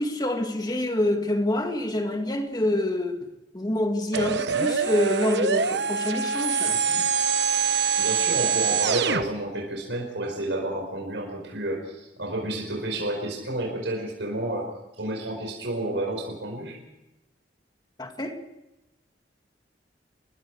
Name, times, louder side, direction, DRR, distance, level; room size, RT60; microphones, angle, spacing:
voice 1, 0.0-3.2 3.5-7.0 18.0-18.4, left 1 dB, 25° left, 2.1 m, -26 dB
sound 1, 4.1-9.2, right 5 dB, 70° right, 1.0 m, -24 dB
voice 2, 8.0-14.7 15.0-16.8, right 1 dB, 85° right, 5.1 m, -30 dB
28.5 x 21.5 x 4.8 m
head